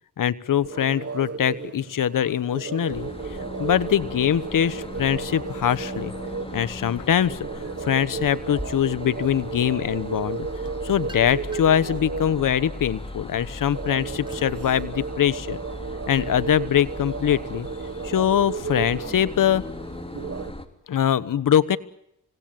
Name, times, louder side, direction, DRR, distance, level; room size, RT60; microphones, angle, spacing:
voice 1, 0.2-3.1 3.6-6.1 6.5-7.4 7.8-10.4 10.8-15.6 16.1-17.7 18.0-19.6 20.9-21.8, left 9 dB, 85° left, 17 dB, 1.2 m, -23 dB
sound 1, 0.6-20.5, right 5 dB, 50° right, 1.7 m, -35 dB
sound 2, 2.9-20.7, left 1 dB, 15° left, 3.1 m, -38 dB
sound 3, 10.5-11.9 12.4-14.7, right 1 dB, 15° right, 3.4 m, -47 dB
26.5 x 18.5 x 9.1 m, 0.78 s
cardioid pair, 65°, 32 cm